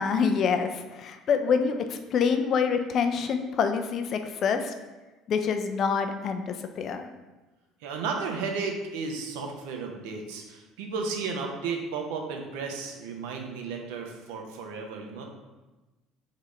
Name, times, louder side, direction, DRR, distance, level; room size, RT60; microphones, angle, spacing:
voice 1, 0.0-4.7 5.3-7.1, left 6 dB, 45° left, 7 dB, 0.4 m, -26 dB
voice 2, 7.8-15.2, right 4 dB, 65° right, 2 dB, 0.6 m, -33 dB
3.8 x 3.6 x 3.2 m, 1.1 s
figure-of-eight pair, 60°, 0 cm